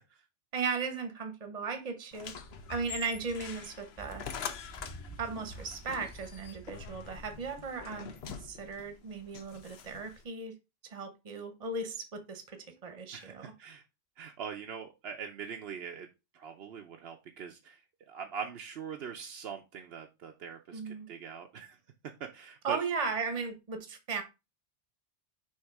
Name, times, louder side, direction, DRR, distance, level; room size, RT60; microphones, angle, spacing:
voice 1, 0.5-2.3 2.7-4.2 5.2-10.5 10.9-13.5 20.7-21.1 22.6-24.2, right 4 dB, 35° right, 1.0 m, -36 dB
sound 1, 2.1-10.2, left 7 dB, 65° left, 0.9 m, -45 dB
sound 2, 2.4-8.7, right 1 dB, 15° left, 0.7 m, -51 dB
voice 2, 13.1-13.8 14.2-16.1 16.3-17.8 18.1-21.8 22.2-22.8, right 7 dB, 65° right, 0.9 m, -42 dB
6.4 x 3.2 x 4.6 m
omnidirectional pair, 1.2 m